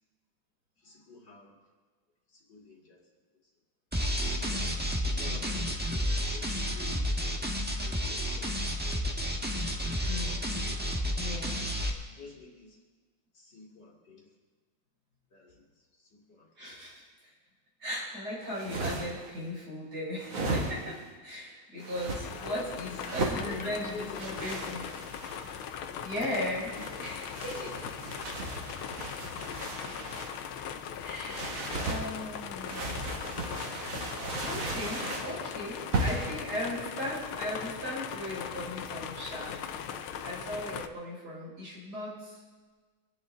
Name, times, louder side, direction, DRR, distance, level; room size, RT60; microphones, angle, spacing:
voice 1, 0.8-1.6 2.3-3.0 4.3-5.6 5.9-7.1 7.6-8.6 9.8-11.8 12.0-12.8 13.3-14.3 15.3-16.8 22.3-25.0 26.6-26.8 27.5-27.7 28.8-29.7 30.9-31.5, left 3 dB, 55° left, -2 dB, 3.0 m, -50 dB
sound 1, 3.9-11.9, equal, 5° right, 1.0 m, -31 dB
voice 2, 5.2-5.6 10.0-10.4 11.2-11.6 16.6-17.3 17.8-24.9 26.0-27.9 31.0-32.8 34.4-39.6 40.2-42.4, left 1 dB, 50° right, -7 dB, 6.3 m, -37 dB
sound 2, 18.4-19.3 20.2-21.1 21.8-22.2 23.0-23.4 24.2-25.6 26.6-30.4 31.3-32.0 32.6-35.3 35.9-36.4, right 2 dB, 70° right, 2.7 m, -35 dB
sound 3, 22.1-40.9, left 8 dB, 85° left, 1.6 m, -40 dB
25.5 x 10.5 x 3.9 m, 1.4 s
omnidirectional pair, 2.2 m